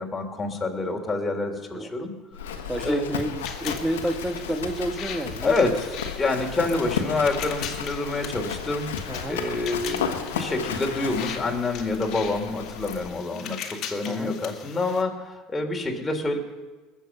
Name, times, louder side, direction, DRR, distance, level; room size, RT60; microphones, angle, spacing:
voice 1, 0.0-2.1 2.8-3.1 5.4-8.9 9.3-16.4, left 3 dB, 20° left, 1 dB, 3.0 m, -27 dB
Livestock farm animals working animals, 2.3-13.1, left 7 dB, 85° left, 1.4 m, -33 dB
voice 2, 2.7-5.8 9.1-9.4 14.1-14.3, right 1 dB, 10° right, 8 dB, 1.4 m, -30 dB
sound 1, 3.4-15.0, left 8 dB, 55° left, 1.8 m, -40 dB
20.5 x 7.1 x 7.0 m, 1.3 s
hypercardioid pair, 80°, 0 cm